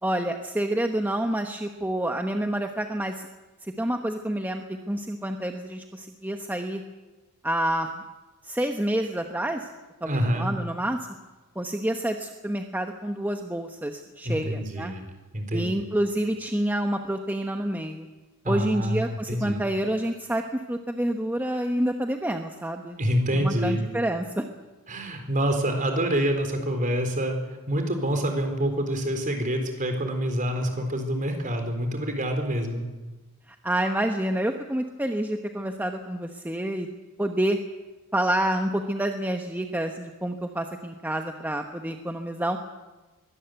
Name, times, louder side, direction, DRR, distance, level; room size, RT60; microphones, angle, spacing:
voice 1, 0.0-3.3 3.6-6.8 7.4-7.9 8.4-9.7 10.0-11.1 11.6-14.9 15.5-18.1 18.5-23.0 23.3-24.4 33.5-36.9 37.2-37.6 38.1-42.6, right 1 dB, 10° right, 5 dB, 1.0 m, -28 dB
voice 2, 10.0-10.5 14.2-15.1 15.3-15.7 18.4-19.6 23.0-23.9 24.9-27.4 27.7-32.9, equal, 35° right, 5 dB, 4.1 m, -26 dB
22.5 x 18.0 x 8.1 m, 1.2 s
head